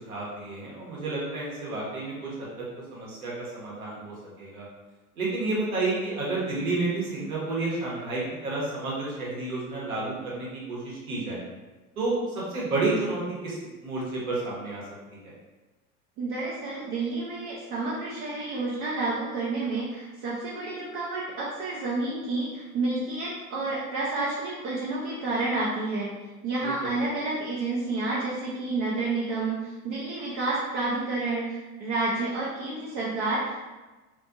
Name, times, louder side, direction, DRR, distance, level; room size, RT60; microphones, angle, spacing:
voice 1, 0.0-2.5 2.9-4.7 5.1-11.4 12.0-14.8 15.1-15.3 26.6-26.9, right 2 dB, 70° right, -6 dB, 1.1 m, -31 dB
voice 2, 16.2-26.1 26.4-33.7, right 3 dB, 30° right, -5 dB, 0.4 m, -30 dB
2.5 x 2.5 x 2.4 m, 1.2 s
figure-of-eight pair, 80°, 45 cm